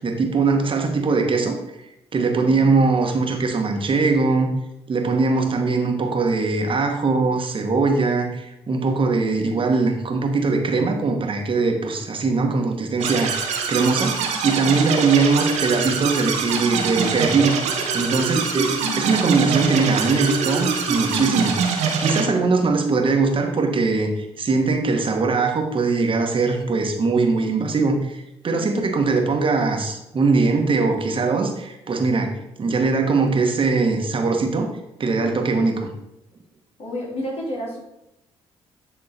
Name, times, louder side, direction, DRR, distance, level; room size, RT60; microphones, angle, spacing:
voice 1, 0.0-1.6 2.1-4.5 4.9-34.7 35.0-35.9, right 4 dB, 45° right, 3 dB, 1.5 m, -21 dB
voice 2, 2.4-2.8 14.6-14.9 28.5-28.9 36.8-37.8, left 1 dB, 55° left, -3 dB, 2.9 m, -32 dB
sound 1, 13.0-22.3, right 5 dB, 70° right, 1.1 m, -24 dB
9.0 x 3.7 x 4.3 m, 0.88 s
hypercardioid pair, 50°, 13 cm